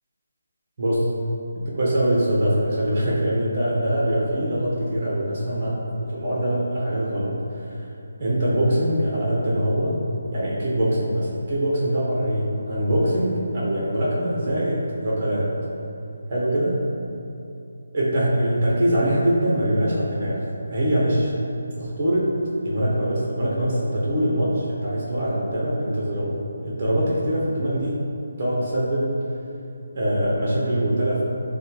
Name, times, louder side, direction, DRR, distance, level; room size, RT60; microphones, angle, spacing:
voice 1, 0.8-1.1 1.5-7.4 7.7-7.9 8.2-9.9 10.3-15.5 16.3-16.8 17.9-20.4 20.7-21.3 21.8-22.3 22.6-26.4 26.6-28.0 28.4-29.2 29.9-31.2, right 1 dB, 30° right, -6 dB, 0.9 m, -23 dB
6.3 x 2.2 x 3.0 m, 2.8 s
hypercardioid pair, 175°, 0 cm